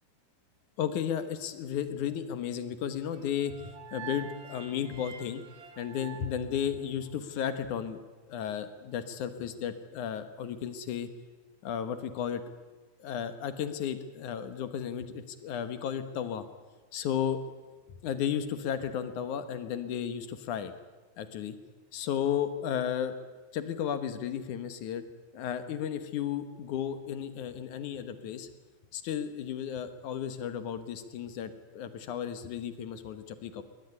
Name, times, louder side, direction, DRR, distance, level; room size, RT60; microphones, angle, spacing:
voice 1, 0.8-5.4 5.8-8.0 8.3-11.1 11.6-12.4 13.0-16.5 16.9-17.4 18.0-20.7 21.2-21.6 21.9-23.1 23.5-25.0 25.3-28.5 28.9-33.6, left 9 dB, 75° left, 10 dB, 2.8 m, -34 dB
sound 1, 3.1-7.3, right 7 dB, 65° right, 2.7 m, -47 dB
21.5 x 18.0 x 9.8 m, 1.3 s
omnidirectional pair, 3.6 m